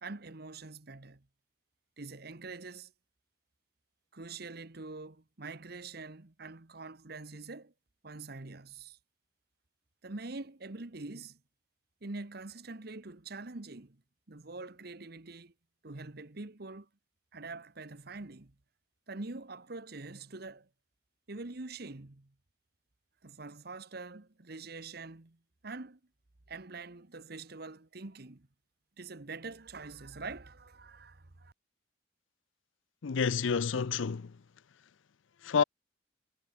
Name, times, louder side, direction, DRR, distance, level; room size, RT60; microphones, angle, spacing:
voice 1, 0.0-1.2 2.0-2.9 4.1-7.7 8.0-9.0 10.0-11.4 12.0-14.0 14.3-15.5 15.8-16.9 17.3-18.5 19.1-20.7 21.3-22.3 23.2-25.4 25.6-26.0 26.5-28.5 29.0-31.5, right 3 dB, 55° right, 1.3 m, -44 dB
voice 2, 33.0-34.3 35.4-35.6, left 6 dB, 85° left, 0.5 m, -29 dB
head